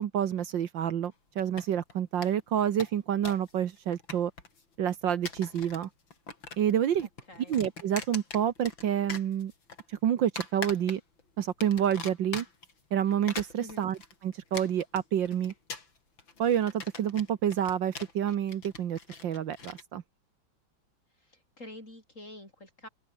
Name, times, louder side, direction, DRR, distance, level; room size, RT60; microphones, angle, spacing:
voice 1, 0.0-4.3 4.8-5.9 6.6-7.1 7.5-9.5 9.9-11.0 11.4-12.5 12.9-14.0 14.2-15.5 16.4-20.0, right 9 dB, 70° right, 1.8 m, -28 dB
sound 1, 1.4-1.9 2.2-2.3 2.6-3.5 3.8-4.6 5.1-5.9 6.1-6.7 7.0-8.8 9.1-9.8 10.4-11.2 11.6-12.7 13.1-19.8, left 4 dB, 70° left, 4.5 m, -41 dB
voice 2, 7.0-7.6 13.6-13.9 21.2-22.9, left 1 dB, 35° left, 8.4 m, -48 dB
open air
omnidirectional pair, 2.2 m